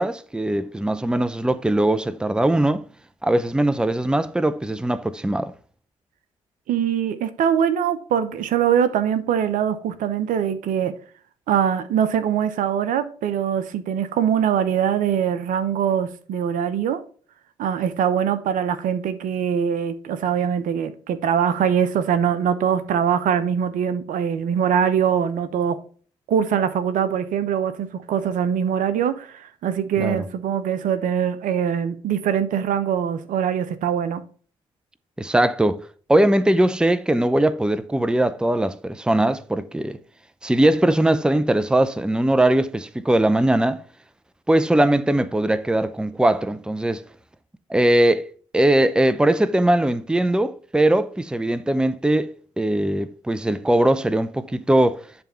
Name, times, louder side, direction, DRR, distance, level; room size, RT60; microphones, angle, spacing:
voice 1, 0.0-2.8 3.2-5.5 30.0-30.2 35.2-35.8 36.1-40.0 40.4-43.8 44.5-47.0 47.7-48.3 48.5-55.0, right 1 dB, 5° right, 0.7 m, -20 dB
voice 2, 6.7-10.9 11.5-17.0 17.6-25.8 26.3-34.2, right 8 dB, 65° right, 0.9 m, -22 dB
10.5 x 3.5 x 5.6 m
hypercardioid pair, 40°, 15 cm